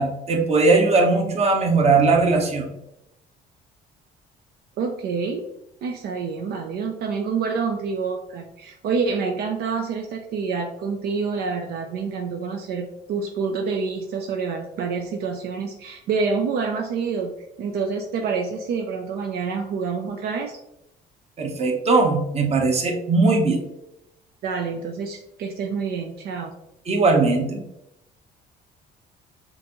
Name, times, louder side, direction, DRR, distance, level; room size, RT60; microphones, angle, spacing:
voice 1, 0.0-2.7 21.4-23.6 26.9-27.6, right 3 dB, 40° right, 3 dB, 1.0 m, -19 dB
voice 2, 4.8-5.5 5.8-17.3 17.6-20.6 24.4-26.5, right 5 dB, 70° right, 3 dB, 0.5 m, -27 dB
5.7 x 2.6 x 3.0 m, 0.84 s
cardioid pair, 110°, 17 cm